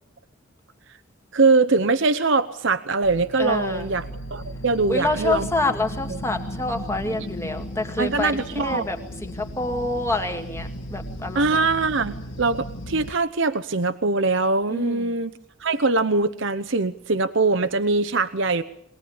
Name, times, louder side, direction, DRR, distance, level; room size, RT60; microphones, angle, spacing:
voice 1, 1.3-5.5 8.0-8.8 11.3-15.3 15.6-18.6, right 3 dB, 60° right, 11 dB, 0.9 m, -22 dB
sound 1, 3.0-13.1, equal, 60° left, 1.9 m, -35 dB
voice 2, 3.4-3.9 4.9-11.6 14.7-15.1, left 2 dB, 10° left, 4 dB, 2.1 m, -27 dB
23.0 x 19.0 x 8.7 m, 0.67 s
head